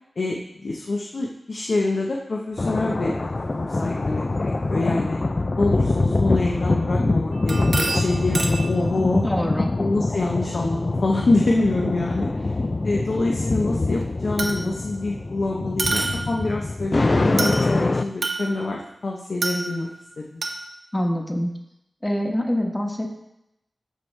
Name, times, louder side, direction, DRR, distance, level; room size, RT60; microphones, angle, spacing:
voice 1, 0.2-3.1 3.6-5.2 5.6-9.3 9.8-12.5 12.8-19.9 20.2-20.4, left 2 dB, 70° left, -1 dB, 0.8 m, -26 dB
sound 1, 2.6-18.0, left 2 dB, 45° left, 0.4 m, -24 dB
sound 2, 7.3-8.8 12.2-12.3 14.4-14.9 15.8-16.5 17.4-17.8 18.2-18.8 19.4-20.0 20.4-20.6, right 3 dB, 80° right, 0.9 m, -28 dB
voice 2, 9.2-9.7 20.9-21.5 22.0-23.1, equal, 15° left, 1 dB, 1.2 m, -24 dB
13.5 x 4.7 x 3.3 m, 0.85 s
wide cardioid pair, 75°, 0 cm